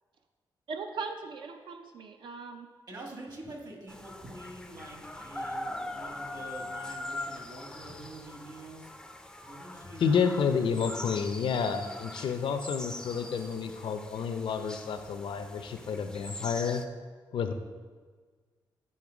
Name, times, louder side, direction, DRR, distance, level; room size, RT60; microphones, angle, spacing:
voice 1, 0.7-2.7, right 4 dB, 70° right, 5 dB, 0.5 m, -39 dB
voice 2, 2.9-8.9 9.4-10.2, right 1 dB, 50° right, 1 dB, 1.4 m, -46 dB
sound 1, 3.9-16.9, left 1 dB, 10° left, 0.4 m, -42 dB
voice 3, 10.0-16.8 17.3-17.5, left 6 dB, 80° left, 8 dB, 0.6 m, -30 dB
8.6 x 3.9 x 4.9 m, 1.5 s
wide cardioid pair, 150°, 8 cm